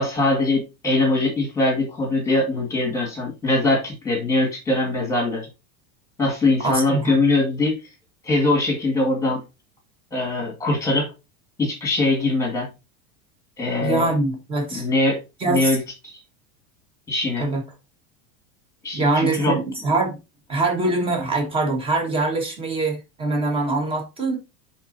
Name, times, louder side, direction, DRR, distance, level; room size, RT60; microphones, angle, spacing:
voice 1, 0.0-5.5 6.2-7.7 8.2-9.4 10.1-11.1 11.6-12.7 13.6-14.1 14.7-16.2 17.1-17.5 18.8-19.6, left 2 dB, 5° left, 1.9 m, -22 dB
voice 2, 6.6-7.1 13.8-14.9 15.4-15.7 17.4-17.6 18.9-20.2 20.5-24.4, right 2 dB, 15° right, 1.6 m, -23 dB
10.5 x 4.1 x 2.7 m
supercardioid pair, 180°, 41 cm